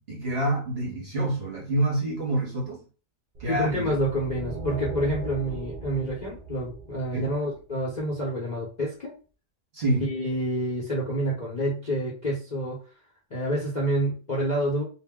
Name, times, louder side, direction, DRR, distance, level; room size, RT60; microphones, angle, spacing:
voice 1, 0.1-2.8 3.4-3.9 7.1-7.3 9.7-10.1, right 1 dB, 45° right, 0.9 m, -27 dB
sound 1, 3.3-7.8, right 2 dB, 75° right, 0.5 m, -38 dB
voice 2, 3.5-9.1 10.0-12.8 13.3-14.8, right 1 dB, 40° left, 0.7 m, -28 dB
2.7 x 2.0 x 3.5 m
omnidirectional pair, 1.7 m